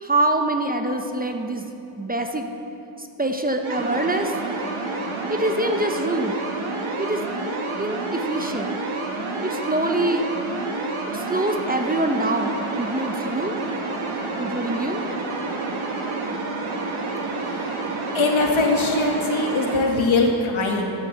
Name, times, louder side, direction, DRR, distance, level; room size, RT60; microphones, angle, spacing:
voice 1, 0.0-2.5 3.0-4.3 5.3-6.4 7.0-7.2 7.8-8.7 9.4-10.2 11.1-13.6 14.4-15.0, right 1 dB, 20° right, 5 dB, 1.0 m, -25 dB
sound 1, 3.6-19.8, right 3 dB, 85° right, 1.8 m, -29 dB
voice 2, 18.1-20.9, left 2 dB, 75° left, 1 dB, 2.1 m, -21 dB
12.0 x 11.0 x 6.9 m, 2.9 s
cardioid pair, 75°, 47 cm